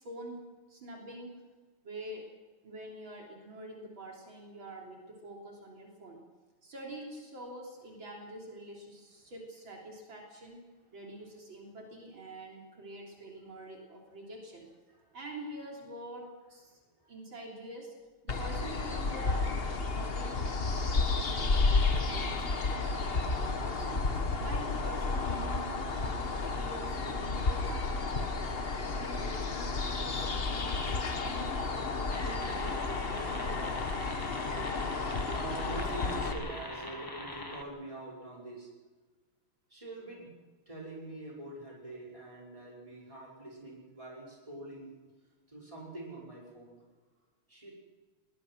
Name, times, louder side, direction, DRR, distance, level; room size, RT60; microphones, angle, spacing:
voice 1, 0.0-1.4 1.8-2.3 2.6-6.2 6.6-10.6 10.9-14.7 15.1-16.8 17.1-17.9 18.2-19.5 19.8-24.0 24.4-28.3 28.8-30.7 31.2-34.3, right 1 dB, 70° right, 0 dB, 4.1 m, -46 dB
sound 1, 18.3-36.3, left 3 dB, 35° left, 1.3 m, -32 dB
sound 2, 32.1-37.6, left 1 dB, 10° left, 1.2 m, -43 dB
voice 2, 35.3-38.7 39.7-40.4 40.7-44.9 45.5-46.8 47.5-47.7, right 2 dB, 15° right, -3 dB, 5.8 m, -44 dB
21.0 x 19.5 x 6.3 m, 1.3 s
omnidirectional pair, 2.3 m